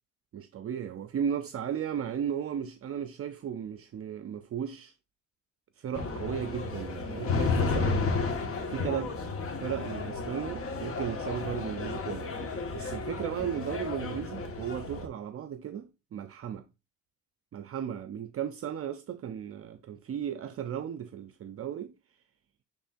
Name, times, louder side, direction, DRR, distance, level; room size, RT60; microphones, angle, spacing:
voice 1, 0.3-4.9 5.8-8.3 8.7-9.1 9.6-12.3 12.7-15.8 16.1-16.6 17.5-21.9, right 9 dB, 50° right, 0.6 m, -35 dB
sound 1, 5.9-15.1, left 4 dB, 45° left, 1.5 m, -32 dB
10.0 x 3.6 x 2.5 m
cardioid pair, 90°, 30 cm